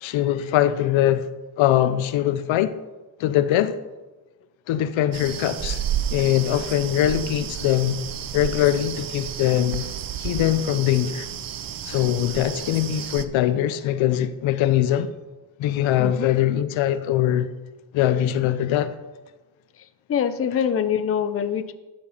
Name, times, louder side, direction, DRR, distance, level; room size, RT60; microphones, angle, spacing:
voice 1, 0.0-1.3 1.6-2.8 3.2-3.8 4.7-5.8 6.1-8.0 8.3-9.8 10.2-11.3 11.9-15.1 15.6-17.5 17.9-19.0, left 12 dB, 85° left, 0.9 m, -22 dB
sound 1, 5.1-13.2, right 10 dB, 45° right, 0.8 m, -32 dB
voice 2, 20.1-21.7, left 8 dB, 30° left, 0.6 m, -24 dB
12.0 x 7.9 x 5.8 m
cardioid pair, 130°, 46 cm